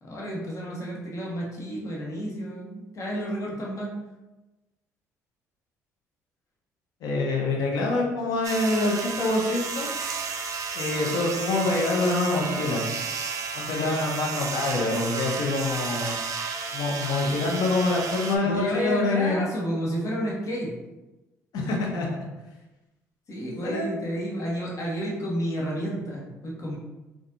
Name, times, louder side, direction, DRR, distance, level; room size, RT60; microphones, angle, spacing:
voice 1, 0.0-3.9 18.4-20.7 23.3-26.8, equal, 50° left, -4 dB, 1.2 m, -31 dB
voice 2, 7.0-9.9 10.7-12.9 13.5-16.2 16.7-19.4 21.5-22.1 23.6-23.9, left 2 dB, 70° left, -1 dB, 0.9 m, -25 dB
sound 1, 8.4-18.4, right 4 dB, 50° right, 0.5 m, -32 dB
4.1 x 2.5 x 2.6 m, 1.1 s
hypercardioid pair, 60°, 7 cm